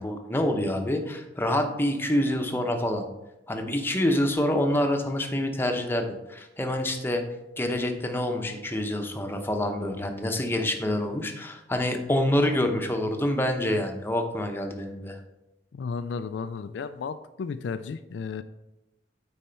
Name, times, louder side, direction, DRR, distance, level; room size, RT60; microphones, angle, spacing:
voice 1, 0.0-3.0 3.5-7.2 7.6-15.2, left 1 dB, 10° left, 4 dB, 0.8 m, -27 dB
voice 2, 15.7-18.4, left 5 dB, 70° left, 11 dB, 0.3 m, -33 dB
9.0 x 4.3 x 4.4 m, 0.94 s
head